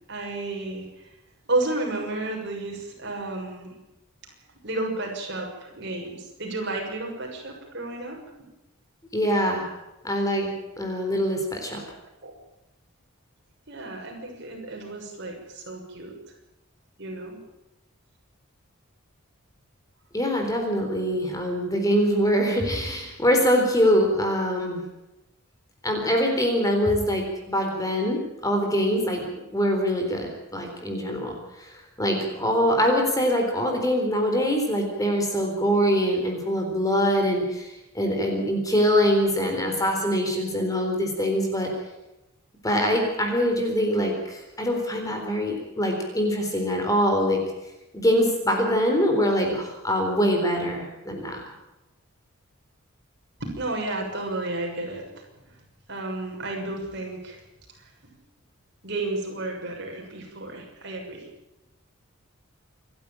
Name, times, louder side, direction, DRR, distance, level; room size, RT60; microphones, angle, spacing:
voice 1, 0.1-1.1 1.5-3.7 4.6-8.2 12.2-12.3 13.7-16.1 17.0-17.4 53.4-55.2 55.9-57.4 58.8-61.3, right 2 dB, 55° right, 1 dB, 6.4 m, -32 dB
voice 2, 9.1-9.7 10.0-10.5 10.8-11.8 20.1-24.8 25.8-41.7 42.6-47.4 47.9-51.4, equal, 15° left, 3 dB, 4.0 m, -24 dB
27.5 x 12.0 x 9.1 m, 0.96 s
head